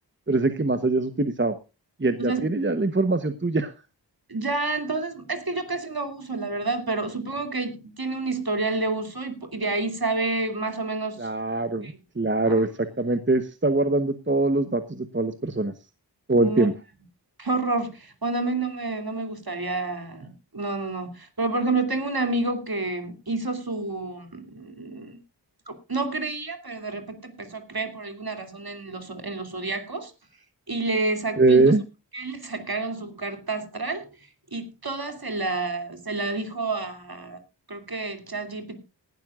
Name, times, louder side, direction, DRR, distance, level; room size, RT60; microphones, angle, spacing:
voice 1, 0.3-1.6 2.0-3.7 11.2-15.7 16.3-16.7 31.4-31.8, right 2 dB, 25° right, 10 dB, 1.0 m, -23 dB
voice 2, 4.3-11.3 11.8-12.0 12.5-12.6 16.4-16.7 17.4-25.2 25.7-30.1 30.7-31.8 32.1-37.4 37.7-38.8, right 3 dB, 55° right, 7 dB, 2.9 m, -29 dB
19.0 x 12.5 x 2.4 m, 0.28 s
wide cardioid pair, 55°, 44 cm